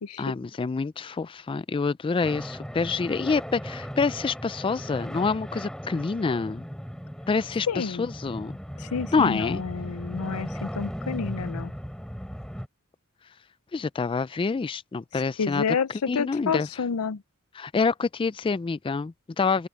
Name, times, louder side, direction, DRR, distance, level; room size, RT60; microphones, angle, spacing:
voice 1, 0.2-6.6 7.3-8.6 9.1-9.6 13.7-15.6 16.1-16.7 17.6-19.7, left 4 dB, 25° left, 0.3 m, -27 dB
sound 1, 2.2-12.7, equal, 5° left, 4.6 m, -37 dB
voice 2, 7.7-8.1 8.8-11.7 15.1-17.2, left 6 dB, 90° left, 0.5 m, -29 dB
open air
head